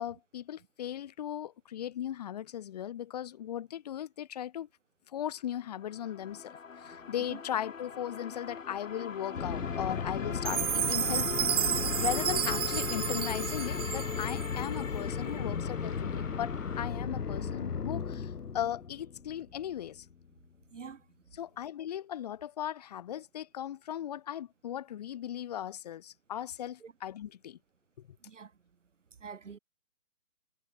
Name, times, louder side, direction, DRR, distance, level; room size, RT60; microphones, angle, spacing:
voice 1, 0.0-4.7 5.1-11.4 12.0-20.0 21.4-27.6, left 11 dB, 25° left, 5.8 m, -37 dB
sound 1, 5.6-16.9, left 6 dB, 55° left, 4.0 m, -41 dB
sound 2, 9.4-20.1, left 6 dB, 80° left, 2.0 m, -36 dB
Chime, 10.5-14.7, right 10 dB, 15° right, 1.6 m, -32 dB
voice 2, 29.2-29.6, right 6 dB, 50° right, 7.2 m, -45 dB
hypercardioid pair, 170°, 46 cm